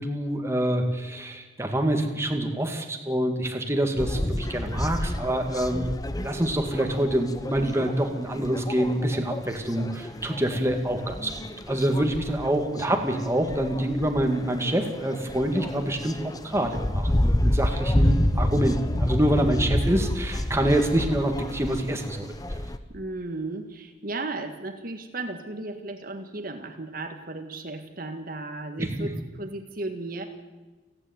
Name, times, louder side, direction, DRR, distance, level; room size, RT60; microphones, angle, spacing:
voice 1, 0.0-5.9 6.1-11.3 11.7-22.6 28.8-29.1, right 1 dB, 15° right, 4 dB, 2.1 m, -26 dB
sound 1, 4.0-22.8, left 1 dB, 20° left, 0.9 m, -29 dB
voice 2, 12.4-12.8 22.9-30.3, right 2 dB, 50° right, 5 dB, 1.8 m, -35 dB
29.5 x 9.9 x 9.4 m, 1.2 s
head